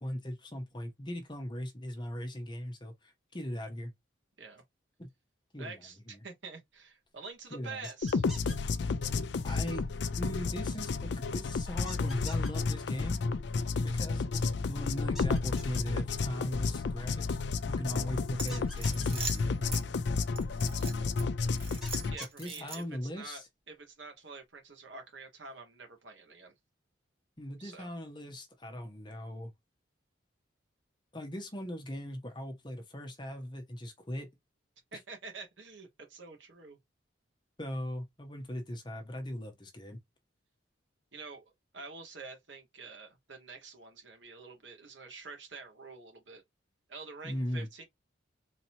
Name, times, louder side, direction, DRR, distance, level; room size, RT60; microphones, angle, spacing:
voice 1, 0.0-3.9 5.0-5.1 5.5-5.8 6.1-6.2 7.5-7.9 9.4-13.2 13.8-17.4 17.7-19.6 22.4-23.5 27.4-29.5 31.1-34.3 37.6-40.0 47.2-47.7, equal, 25° left, 0.9 m, -39 dB
voice 2, 5.6-8.2 22.1-26.5 27.6-27.9 34.9-36.8 41.1-41.4 41.7-46.4 46.9-47.8, right 4 dB, 70° right, 1.6 m, -47 dB
sound 1, 7.8-8.6 11.9-12.5 15.2-15.8 18.5-19.1 21.8-22.5, equal, ahead, 1.3 m, -46 dB
sound 2, 8.0-22.1, left 4 dB, 60° left, 0.4 m, -32 dB
sound 3, 18.4-19.8 20.4-21.2 21.6-23.0, right 4 dB, 30° right, 1.1 m, -41 dB
4.0 x 3.0 x 2.7 m
head